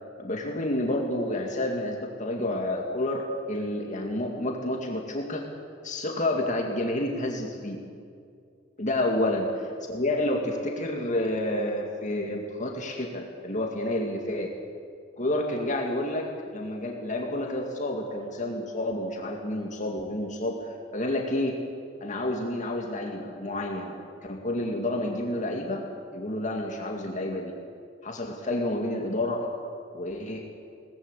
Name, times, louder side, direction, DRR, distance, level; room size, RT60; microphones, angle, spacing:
voice 1, 0.2-5.4 5.8-7.8 8.8-14.5 15.2-21.6 22.0-25.8 26.1-27.5 28.0-29.5 29.9-30.4, left 1 dB, 40° left, 1 dB, 2.2 m, -29 dB
22.0 x 19.0 x 8.3 m, 2.3 s
head